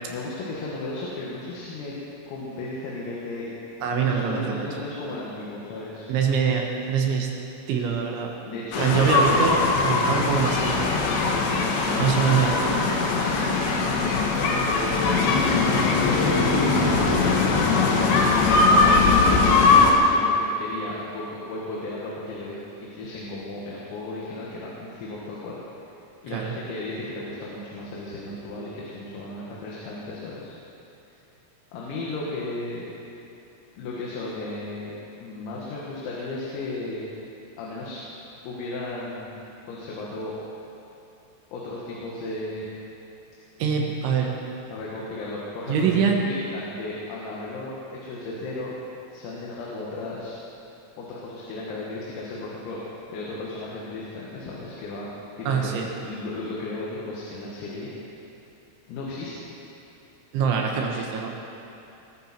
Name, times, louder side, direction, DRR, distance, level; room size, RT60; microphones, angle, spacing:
voice 1, 0.1-1.9 2.3-3.5 4.0-6.1 8.4-9.5 14.4-15.1 15.5-16.8 17.2-17.9 18.5-25.6 26.2-30.5 31.7-32.8 33.8-34.9 35.2-37.1 37.6-38.0 38.4-39.4 39.7-40.3 41.5-42.8 44.7-48.7 49.1-50.4 51.0-52.8 53.1-55.1 55.4-55.7 56.0-57.9 58.9-59.3, left 2 dB, 85° left, -5 dB, 4.6 m, -34 dB
voice 2, 3.8-4.8 6.1-7.3 7.7-8.3 8.8-11.2 12.0-12.9 26.3-26.5 43.6-44.4 45.7-46.2 55.5-55.9 60.3-61.5, right 6 dB, 70° right, 1 dB, 3.3 m, -24 dB
sound 1, 8.7-19.9, left 4 dB, 65° left, 3.3 m, -20 dB
21.5 x 14.0 x 4.5 m, 2.8 s
omnidirectional pair, 6.0 m